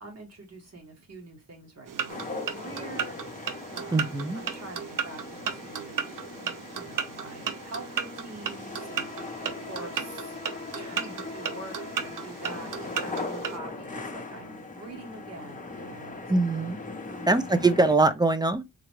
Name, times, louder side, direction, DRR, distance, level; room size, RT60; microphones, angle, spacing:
voice 1, 0.0-10.4 10.7-16.3 17.1-17.7, right 2 dB, 50° right, 1.3 m, -45 dB
sound 1, 1.9-13.6, right 8 dB, 65° right, 0.5 m, -35 dB
sound 2, 2.1-17.9, left 3 dB, 25° left, 0.7 m, -40 dB
voice 2, 3.9-4.4 16.3-16.8 17.3-18.6, right 3 dB, 15° right, 0.3 m, -22 dB
3.9 x 2.2 x 3.0 m
wide cardioid pair, 115°, 34 cm